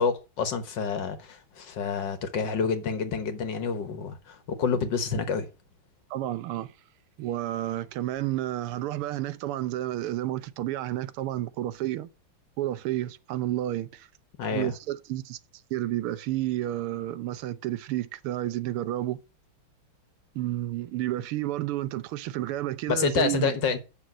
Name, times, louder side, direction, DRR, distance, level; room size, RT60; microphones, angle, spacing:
voice 1, 0.0-5.5 14.4-14.7 22.9-23.8, left 5 dB, 60° left, 1.7 m, -28 dB
voice 2, 6.1-6.7 7.2-12.1 12.6-14.1 14.5-15.4 15.7-19.2 20.3-23.5, right 14 dB, 80° right, 1.6 m, -31 dB
8.5 x 6.3 x 6.1 m
omnidirectional pair, 2.4 m